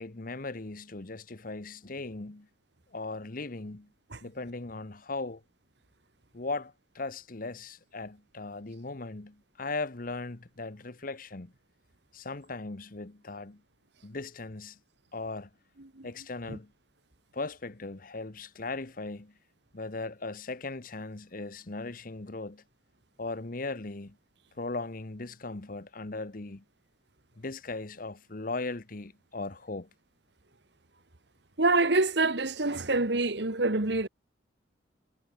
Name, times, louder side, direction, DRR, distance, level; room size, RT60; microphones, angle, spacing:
voice 1, 0.0-2.5 2.9-3.9 4.2-5.4 6.3-11.5 12.1-13.6 14.0-14.8 15.1-15.5 16.0-16.7 17.3-19.3 19.7-22.6 23.2-24.2 24.5-26.6 27.4-29.9, left 3 dB, 45° left, 1.1 m, -38 dB
voice 2, 31.6-34.1, right 3 dB, 65° right, 1.7 m, -26 dB
head